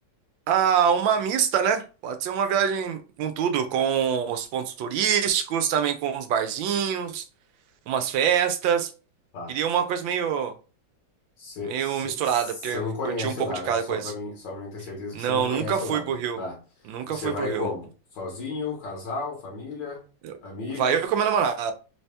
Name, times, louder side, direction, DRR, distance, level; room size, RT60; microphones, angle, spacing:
voice 1, 0.5-7.2 7.9-8.9 9.5-10.5 11.6-13.3 13.7-14.1 15.1-16.4 16.9-17.7 20.2-20.3 20.8-21.7, right 8 dB, 85° right, 1.4 m, -25 dB
voice 2, 11.4-20.0 20.4-21.0, left 3 dB, 70° left, 1.6 m, -34 dB
3.8 x 2.8 x 3.3 m
omnidirectional pair, 2.0 m